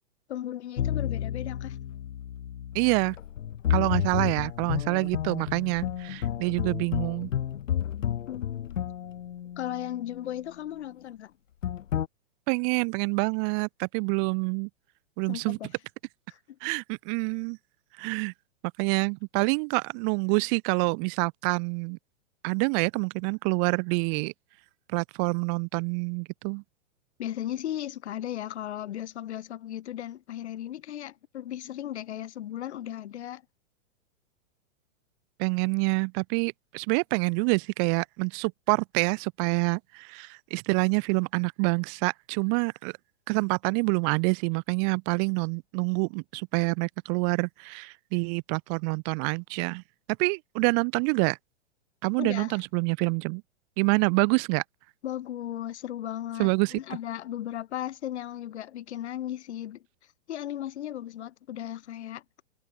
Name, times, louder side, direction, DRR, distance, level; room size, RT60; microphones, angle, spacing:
voice 1, 0.3-1.8 4.2-4.7 8.3-8.9 9.6-11.3 15.3-15.7 16.3-16.6 27.2-33.4 52.2-52.6 55.0-59.8 60.3-62.2, left 12 dB, 60° left, 3.3 m, -36 dB
sound 1, 0.8-10.2 11.6-12.1, left 10 dB, 75° left, 4.5 m, -31 dB
voice 2, 2.7-3.2 3.7-7.3 12.5-14.7 15.2-15.6 16.6-17.6 18.0-18.3 18.8-22.0 22.4-24.3 24.9-26.6 35.4-42.9 43.3-49.8 50.2-51.4 52.0-53.4 53.8-54.6 56.4-56.8, right 40 dB or more, 25° right, 1.2 m, -27 dB
supercardioid pair, 170°, 38 cm